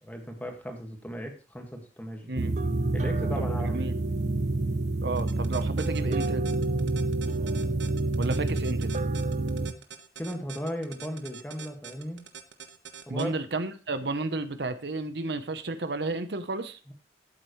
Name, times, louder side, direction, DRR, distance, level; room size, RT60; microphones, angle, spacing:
voice 1, 0.0-2.4 2.9-3.9 10.2-12.2 13.1-13.3 16.9-17.0, equal, 10° left, 3 dB, 1.8 m, -36 dB
sound 1, 2.4-9.7, right 2 dB, 40° right, 0.5 m, -28 dB
voice 2, 3.4-3.9 5.0-6.4 8.2-8.9 13.1-16.8, right 2 dB, 65° right, 11 dB, 0.9 m, -32 dB
sound 2, 5.2-13.2, right 7 dB, 85° right, 1.3 m, -44 dB
13.0 x 7.9 x 3.1 m, 0.34 s
head